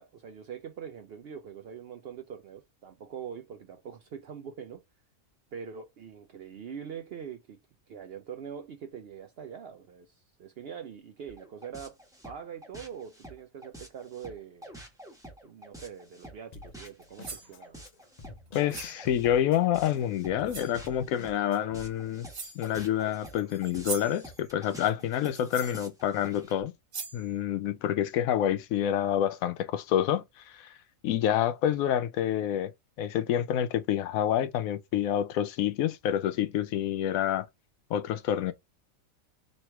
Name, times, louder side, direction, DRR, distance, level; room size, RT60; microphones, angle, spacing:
voice 1, 0.0-4.8 5.5-7.6 7.9-12.0 12.2-14.7 15.4-17.8, right 7 dB, 65° right, 0.6 m, -43 dB
sound 1, 11.3-26.6, right 1 dB, 5° right, 1.2 m, -48 dB
Drum kit, 16.5-21.9, left 3 dB, 55° left, 0.4 m, -49 dB
sound 2, 17.0-17.5 18.7-19.0 20.0-20.1 20.5-20.8 21.9-22.0 22.3-22.7 23.6-24.2 25.5-25.8 26.5-26.6 26.9-27.3, right 4 dB, 45° right, 1.2 m, -39 dB
voice 2, 18.5-22.3 22.6-26.7 27.1-30.7 31.0-32.7 33.0-37.5 37.9-38.5, left 10 dB, 85° left, 1.0 m, -28 dB
3.1 x 3.0 x 4.4 m
omnidirectional pair, 1.4 m